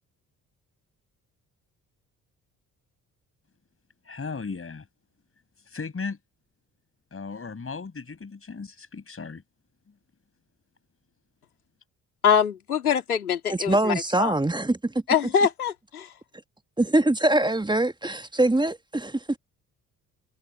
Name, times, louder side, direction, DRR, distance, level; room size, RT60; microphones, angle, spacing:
voice 1, 4.0-4.9 5.7-6.2 7.1-9.4, left 4 dB, 30° left, 6.2 m, -36 dB
voice 2, 12.2-14.3 15.1-16.1, left 7 dB, 90° left, 2.7 m, -24 dB
voice 3, 13.5-14.9 16.8-19.4, right 2 dB, 10° right, 1.6 m, -23 dB
figure-of-eight pair, 45°, 43 cm